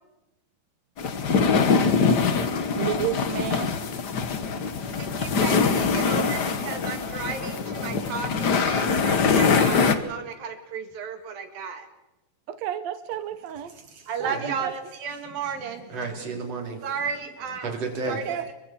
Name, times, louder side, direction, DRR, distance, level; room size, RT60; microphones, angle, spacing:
sound 1, 1.0-9.9, left 5 dB, 70° left, 0.9 m, -23 dB
voice 1, 2.7-3.7 12.5-13.7 14.2-14.7 18.1-18.5, right 10 dB, 65° right, 10 dB, 1.9 m, -31 dB
voice 2, 4.9-11.9 14.1-16.0 16.8-17.7 18.1-18.5, right 5 dB, 80° right, 6 dB, 3.9 m, -34 dB
voice 3, 13.6-14.5 15.9-16.8 17.6-18.2, right 3 dB, 45° right, 2 dB, 4.4 m, -33 dB
30.0 x 24.0 x 4.5 m, 0.98 s
omnidirectional pair, 4.0 m